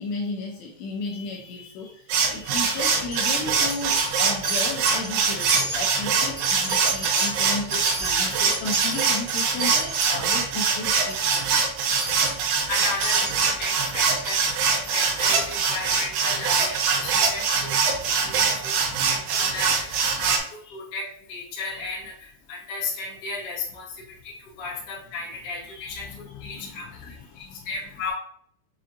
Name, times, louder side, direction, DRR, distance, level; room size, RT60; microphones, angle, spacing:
voice 1, 0.0-11.6 18.9-19.1 20.3-20.8 25.9-27.7, left 3 dB, 80° left, -1 dB, 2.5 m, -34 dB
sound 1, 2.1-20.4, right 5 dB, 75° right, 2.7 m, -23 dB
Wind chime, 2.8-3.3 3.7-4.2 4.4-5.1 5.4-10.1 10.5-10.6 10.9-11.4 11.9-12.3 13.0-13.5 14.2-14.4 14.9-15.0 15.4-15.5, right 2 dB, 55° right, 1.3 m, -32 dB
voice 2, 12.4-18.7 19.0-28.1, left 3 dB, 60° left, -7 dB, 1.5 m, -35 dB
7.4 x 2.5 x 2.5 m, 0.63 s
omnidirectional pair, 5.4 m